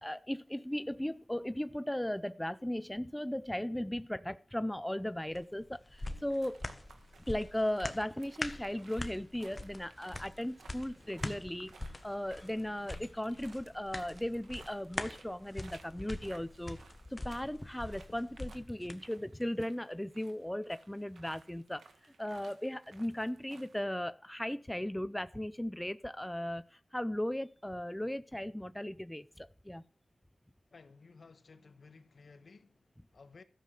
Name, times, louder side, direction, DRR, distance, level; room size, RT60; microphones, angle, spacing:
voice 1, 0.0-6.6 7.3-16.8 17.1-29.8, left 1 dB, 10° left, 0.5 m, -37 dB
sound 1, 5.3-19.0 19.4-19.5, left 2 dB, 30° left, 1.3 m, -44 dB
sound 2, 5.9-23.8, right 4 dB, 90° right, 1.6 m, -60 dB
voice 2, 30.7-33.4, left 4 dB, 60° left, 1.2 m, -57 dB
13.0 x 7.4 x 6.6 m
wide cardioid pair, 70°, 0 cm